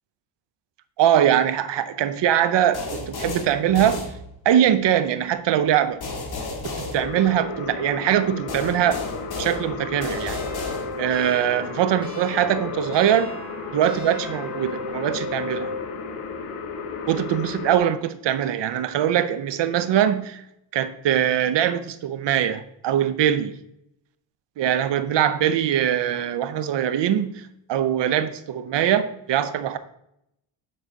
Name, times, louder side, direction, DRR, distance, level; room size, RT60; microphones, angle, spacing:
voice 1, 1.0-4.0 4.4-6.0 6.6-9.0 9.4-10.4 11.0-13.3 13.7-15.7 17.1-20.4 20.7-23.5 24.6-27.4 27.7-29.8, right 10 dB, 60° right, 0.7 m, -22 dB
sound 1, 2.7-4.7 6.0-7.8 8.5-11.3, left 3 dB, 50° left, 1.9 m, -33 dB
sound 2, 6.9-17.8, left 4 dB, 90° left, 1.2 m, -34 dB
sound 3, 10.2-15.9, left 2 dB, 10° right, 1.9 m, -36 dB
8.7 x 4.0 x 3.9 m
cardioid pair, 95°, 49 cm